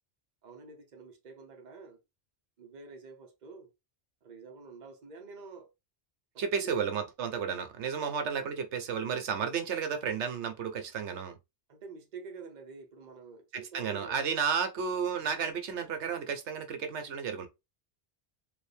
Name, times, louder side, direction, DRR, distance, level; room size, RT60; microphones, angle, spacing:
voice 1, 0.4-2.0 2.6-3.7 4.2-5.7 6.3-6.8 8.0-8.2 11.7-14.3, right 4 dB, 45° right, 1.0 m, -48 dB
voice 2, 6.4-11.4 13.5-17.5, right 6 dB, 90° right, 1.1 m, -32 dB
4.4 x 2.5 x 3.3 m
omnidirectional pair, 1.1 m